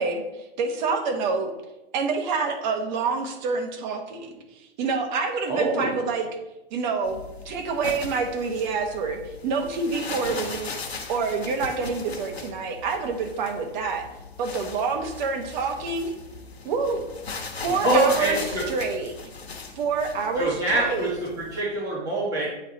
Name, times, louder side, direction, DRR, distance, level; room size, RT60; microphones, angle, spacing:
voice 1, 0.0-1.5 1.9-4.4 4.8-6.3 6.7-7.2 7.4-10.7 11.1-14.1 14.4-16.1 16.6-17.1 17.6-18.4 18.7-19.3 19.8-21.1, right 4 dB, 45° right, 5 dB, 1.1 m, -27 dB
voice 2, 5.5-6.1 17.7-18.7 20.4-22.6, right 2 dB, 10° right, -6 dB, 1.4 m, -25 dB
sound 1, 7.0-21.6, left 4 dB, 85° left, 1.1 m, -38 dB
8.5 x 3.3 x 3.9 m, 0.97 s
hypercardioid pair, 120°, 31 cm